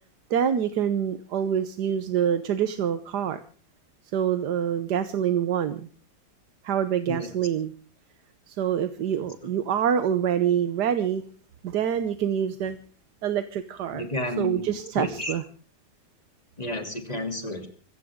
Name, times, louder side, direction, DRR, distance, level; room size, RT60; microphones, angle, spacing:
voice 1, 0.3-3.4 4.1-5.9 6.6-7.7 8.5-11.2 11.6-12.8 13.2-14.1 14.4-15.4, right 9 dB, 60° right, 10 dB, 1.4 m, -26 dB
voice 2, 13.9-14.6 15.0-15.3 16.6-17.7, left 1 dB, 20° left, 5 dB, 2.9 m, -31 dB
25.0 x 15.0 x 3.7 m, 0.43 s
omnidirectional pair, 2.2 m